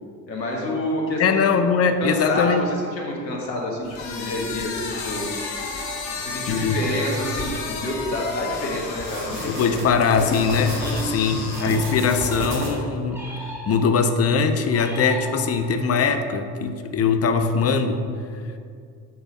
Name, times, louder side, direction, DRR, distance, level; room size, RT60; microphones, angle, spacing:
voice 1, 0.3-1.4 2.0-5.3 6.0-9.8 10.8-11.4, left 1 dB, 85° left, -2 dB, 1.4 m, -28 dB
voice 2, 1.2-2.7 6.5-6.8 9.5-13.2 13.7-18.0, left 5 dB, 30° left, 8 dB, 0.6 m, -21 dB
sound 1, 3.8-12.0, left 4 dB, 60° left, 1.3 m, -33 dB
sound 2, 9.0-11.1 11.5-12.9, right 1 dB, 60° right, 2.2 m, -32 dB
sound 3, 11.5-12.5 13.1-14.1 14.7-15.9, equal, 5° right, 2.0 m, -38 dB
6.4 x 5.4 x 6.3 m, 2.3 s
figure-of-eight pair, 55°, 49 cm